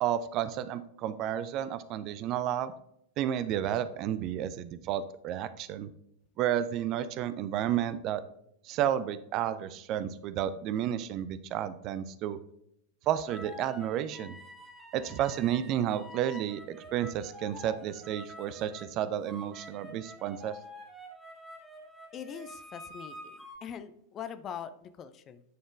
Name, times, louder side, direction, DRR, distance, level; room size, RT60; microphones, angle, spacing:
voice 1, 0.0-2.7 3.2-5.9 6.4-8.2 8.6-12.4 13.1-14.4 14.9-20.6, right 10 dB, 40° right, 14 dB, 0.4 m, -31 dB
sound 1, 13.3-18.9 19.3-23.6, left 1 dB, ahead, 1.5 m, -48 dB
voice 2, 22.1-25.4, left 8 dB, 30° left, 11 dB, 0.5 m, -42 dB
9.2 x 4.3 x 3.3 m, 0.76 s
figure-of-eight pair, 90°, 0 cm